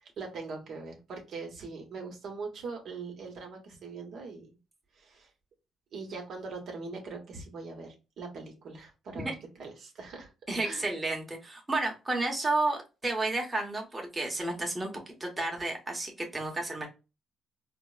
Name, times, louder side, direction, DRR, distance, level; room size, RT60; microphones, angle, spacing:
voice 1, 0.0-4.5 5.0-5.3 5.9-9.3 9.6-10.3 10.6-10.9, right 4 dB, 65° right, 1 dB, 1.0 m, -41 dB
voice 2, 10.5-16.9, right 2 dB, 20° right, 0 dB, 1.0 m, -31 dB
4.3 x 2.1 x 2.3 m, 0.28 s
cardioid pair, 90°, 0 cm